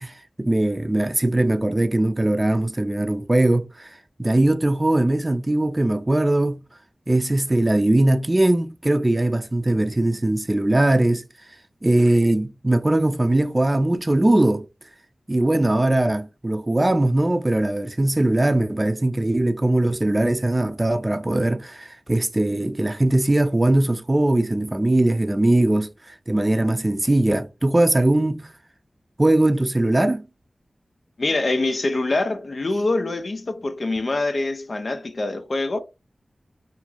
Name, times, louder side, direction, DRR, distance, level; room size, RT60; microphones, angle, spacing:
voice 1, 0.0-3.9 4.2-6.6 7.1-11.2 11.8-14.6 15.3-28.5 29.2-30.3, right 1 dB, 30° right, 0.4 m, -20 dB
voice 2, 31.2-35.8, left 2 dB, 65° left, 0.4 m, -24 dB
2.5 x 2.4 x 2.9 m
cardioid pair, 40°, 0 cm